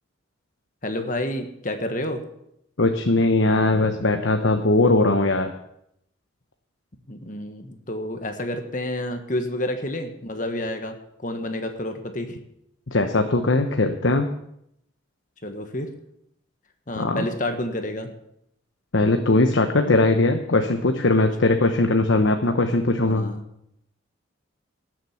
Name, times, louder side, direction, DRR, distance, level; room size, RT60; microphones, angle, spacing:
voice 1, 0.8-2.2 7.1-12.4 15.4-15.9 16.9-18.1 23.1-23.4, left 1 dB, 40° left, 6 dB, 1.5 m, -29 dB
voice 2, 2.8-5.5 12.9-14.3 16.9-17.3 18.9-23.3, left 2 dB, 75° left, 6 dB, 1.0 m, -20 dB
19.0 x 7.6 x 7.2 m, 0.77 s
head